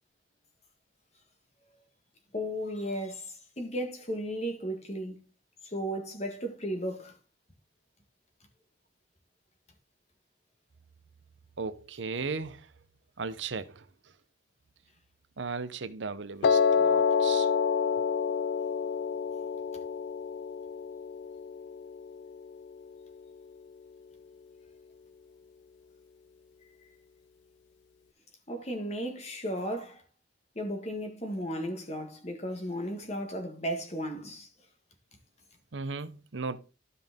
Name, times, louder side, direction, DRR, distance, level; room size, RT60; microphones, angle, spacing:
voice 1, 2.3-5.2 5.6-7.1 28.5-30.0 30.5-34.5, equal, 35° left, 1.7 m, -35 dB
voice 2, 11.6-12.7 13.2-13.8 15.4-17.5 35.7-36.6, right 4 dB, 70° right, 0.7 m, -36 dB
Piano, 16.4-22.6, left 6 dB, 65° left, 0.3 m, -28 dB
12.5 x 5.5 x 3.6 m
head